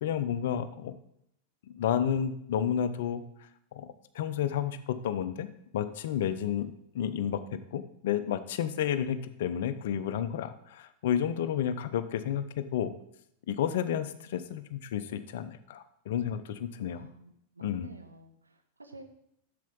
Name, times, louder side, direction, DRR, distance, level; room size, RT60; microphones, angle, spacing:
voice 1, 0.0-1.0 1.7-3.2 3.7-4.8 5.0-5.5 5.7-12.9 13.5-17.1 17.6-17.9, left 9 dB, 55° left, 12 dB, 0.6 m, -31 dB
voice 2, 13.8-14.5 16.9-19.0, right 2 dB, 80° right, 6 dB, 0.9 m, -51 dB
7.5 x 6.7 x 5.3 m, 0.75 s
figure-of-eight pair, 90°, 0 cm